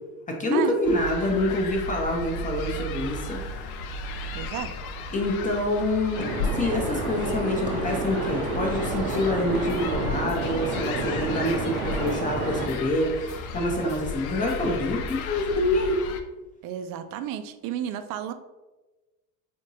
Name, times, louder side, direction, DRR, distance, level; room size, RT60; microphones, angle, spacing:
voice 1, 0.3-3.4 5.1-16.0, left 1 dB, 20° left, 0 dB, 0.6 m, -26 dB
sound 1, 0.8-16.2, left 2 dB, 80° left, 0.5 m, -34 dB
voice 2, 4.3-4.8 16.6-18.3, right 10 dB, 55° right, 9 dB, 0.5 m, -32 dB
sound 2, 6.1-12.7, right 3 dB, 85° right, 0.7 m, -30 dB
sound 3, 8.7-15.5, equal, 50° left, 0.8 m, -44 dB
3.5 x 2.9 x 2.7 m, 1.1 s
hypercardioid pair, 85°, 43 cm